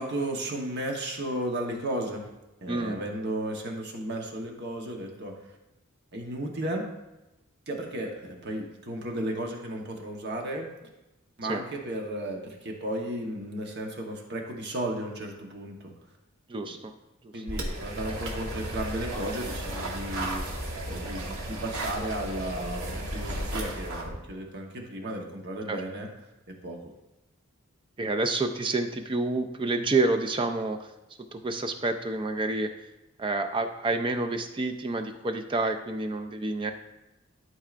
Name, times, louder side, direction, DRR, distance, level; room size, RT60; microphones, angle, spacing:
voice 1, 0.0-2.3 2.6-5.3 6.1-6.8 7.7-10.7 11.4-15.9 16.7-16.8 17.3-26.1 26.6-26.8, right 1 dB, 55° right, 1 dB, 1.0 m, -34 dB
voice 2, 2.7-3.0 11.4-11.6 16.5-16.9 17.3-17.4 25.7-25.8 28.0-30.8 31.3-32.7 33.2-36.7, right 2 dB, 25° right, 6 dB, 0.4 m, -28 dB
sound 1, 17.5-24.1, right 1 dB, 85° right, 1.3 m, -34 dB
12.0 x 4.6 x 2.5 m, 1.0 s
head